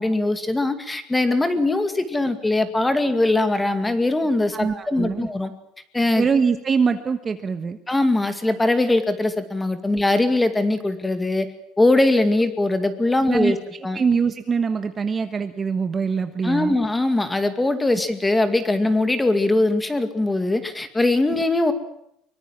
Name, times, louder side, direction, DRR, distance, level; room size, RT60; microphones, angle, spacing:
voice 1, 0.0-5.5 5.9-6.3 7.9-11.5 11.8-13.6 13.8-14.0 16.4-21.7, left 2 dB, 10° left, 9 dB, 2.2 m, -21 dB
voice 2, 4.5-5.3 6.2-7.8 13.3-16.8, right 5 dB, 20° right, 8 dB, 1.2 m, -23 dB
24.0 x 24.0 x 7.5 m, 0.76 s
cardioid pair, 165°, 0 cm